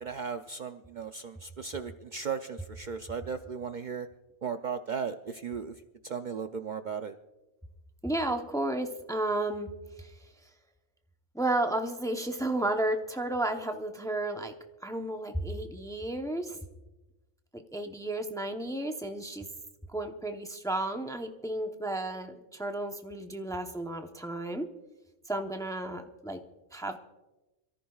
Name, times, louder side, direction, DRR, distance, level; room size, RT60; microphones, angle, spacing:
voice 1, 0.0-4.1 4.4-5.7 6.0-7.2, right 6 dB, 55° right, 7 dB, 0.6 m, -36 dB
voice 2, 8.0-9.7 10.0-10.1 11.3-14.5 14.8-16.6 17.7-19.5 19.9-24.7 25.3-26.4 26.7-27.0, right 1 dB, 5° left, 5 dB, 0.7 m, -32 dB
27.0 x 14.0 x 2.4 m, 1.1 s
omnidirectional pair, 1.1 m